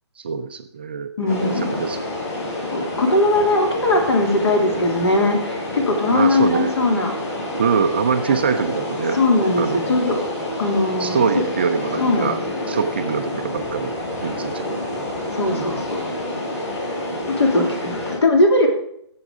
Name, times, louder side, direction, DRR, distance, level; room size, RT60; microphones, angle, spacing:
voice 1, 0.2-2.0 2.8-2.9 4.7-4.9 6.1-6.7 7.6-9.2 9.6-10.0 11.0-12.4 12.7-13.9 14.2-14.7 14.9-15.1 15.5-15.8, right 6 dB, 20° right, 7 dB, 0.4 m, -24 dB
voice 2, 1.2-1.7 2.6-7.1 9.1-10.2 10.6-11.2 12.0-12.4 14.7-14.8 15.3-16.1 17.4-18.7, left 2 dB, 65° left, 2 dB, 3.3 m, -20 dB
sound 1, 1.3-18.2, left 1 dB, 35° left, 5.4 m, -28 dB
15.5 x 7.3 x 3.7 m, 0.71 s
hypercardioid pair, 175°, 15 cm